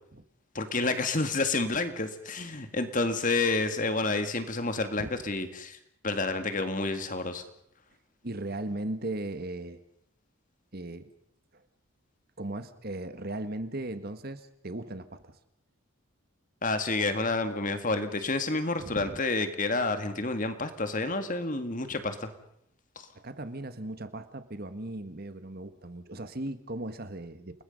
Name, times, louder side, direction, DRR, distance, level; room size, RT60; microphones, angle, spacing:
voice 1, 0.5-5.8 6.0-7.4 16.6-22.3 23.0-23.1, left 3 dB, 35° left, 9 dB, 2.0 m, -29 dB
voice 2, 8.2-9.8 10.7-11.1 11.5-11.6 12.4-15.4 18.8-19.2 21.9-22.0 23.1-27.6, right 1 dB, 45° right, 11 dB, 1.6 m, -37 dB
29.5 x 20.5 x 5.4 m, 0.72 s
head